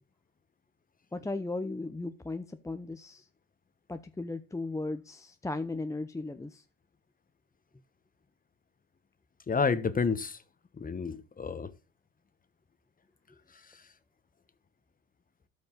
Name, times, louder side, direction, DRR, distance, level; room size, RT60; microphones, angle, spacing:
voice 1, 1.1-3.2 3.9-6.6, left 2 dB, 10° left, 0.7 m, -36 dB
voice 2, 9.5-10.4 10.7-11.7 13.5-13.8, left 5 dB, 25° left, 1.3 m, -30 dB
13.0 x 5.3 x 3.9 m
supercardioid pair, 80°, 30 cm